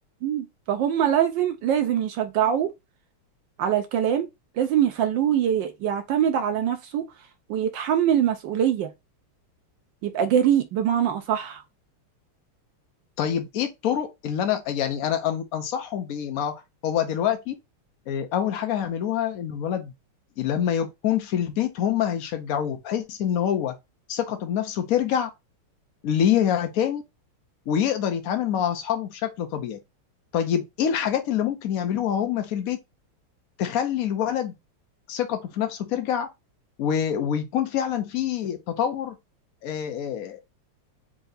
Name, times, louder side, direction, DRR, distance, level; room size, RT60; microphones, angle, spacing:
voice 1, 0.2-2.7 3.6-4.3 4.6-7.0 7.5-8.9 10.0-11.6, right 9 dB, 75° right, 1.1 m, -23 dB
voice 2, 13.2-17.5 18.1-19.9 20.4-23.7 24.1-25.3 26.0-27.0 27.7-29.8 30.3-32.8 33.6-34.5 35.1-36.3 36.8-39.1 39.6-40.4, left 9 dB, 80° left, 0.7 m, -26 dB
4.6 x 2.7 x 3.9 m
omnidirectional pair, 2.4 m